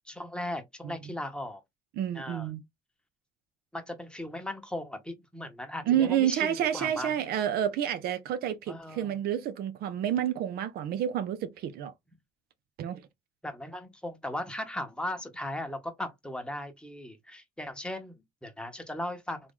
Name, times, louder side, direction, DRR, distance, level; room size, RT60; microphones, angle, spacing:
voice 1, 0.1-1.6 2.1-2.5 3.7-7.1 8.7-9.2 13.4-19.4, left 1 dB, 5° left, 0.9 m, -37 dB
voice 2, 2.0-2.6 5.9-11.9 12.8-13.0, right 10 dB, 70° right, 0.5 m, -29 dB
3.0 x 2.5 x 3.6 m
cardioid pair, 110°, 16 cm